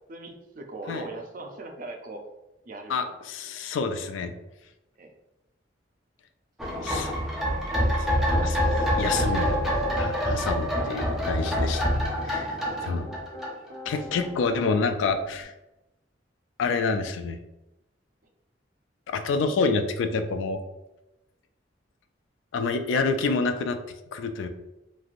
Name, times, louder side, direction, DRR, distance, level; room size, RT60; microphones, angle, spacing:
voice 1, 0.1-2.2 2.7-3.1 5.0-5.1 12.8-12.9, right 2 dB, 45° right, 4 dB, 0.4 m, -39 dB
voice 2, 2.9-4.3 6.8-7.1 8.0-8.1 8.4-9.7 10.0-13.1 13.9-15.5 16.6-17.4 19.1-20.6 22.5-23.8 24.1-24.5, left 4 dB, 90° left, 8 dB, 0.3 m, -28 dB
sound 1, 6.6-14.0 14.2-14.3, equal, ahead, 0.6 m, -26 dB
Piano, 9.0-10.0 10.4-11.6 12.2-15.4, left 1 dB, 70° right, 0.8 m, -44 dB
3.2 x 2.5 x 2.4 m, 0.96 s
head